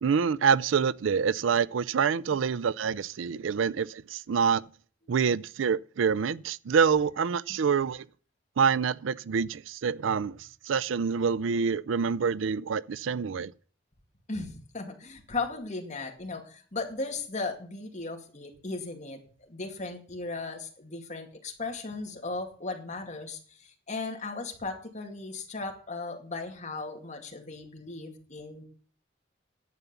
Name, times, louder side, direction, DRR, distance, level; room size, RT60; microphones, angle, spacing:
voice 1, 0.0-4.6 5.1-8.0 8.6-10.4 10.7-13.5, right 6 dB, 90° right, 0.4 m, -26 dB
voice 2, 14.3-28.7, left 3 dB, 40° left, 2.4 m, -37 dB
11.0 x 8.2 x 7.0 m
head